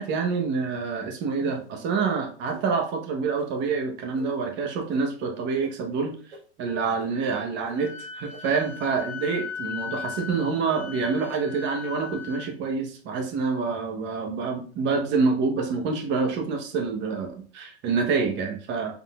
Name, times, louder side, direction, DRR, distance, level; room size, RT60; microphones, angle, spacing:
voice 1, 0.0-6.2 6.6-19.0, right 4 dB, 35° right, 3 dB, 1.1 m, -27 dB
sound 1, 1.3-1.8 2.5-2.7 3.4-3.5 4.1-4.3 4.9-5.0 5.6-5.7 6.3-6.4 7.0-7.1 7.7-7.8 8.3-8.4, right 4 dB, 85° right, 1.6 m, -43 dB
Wind instrument woodwind instrument, 7.7-12.5, left 7 dB, 65° left, 1.5 m, -38 dB
5.9 x 3.6 x 2.4 m, 0.42 s
hypercardioid pair, 130°, 33 cm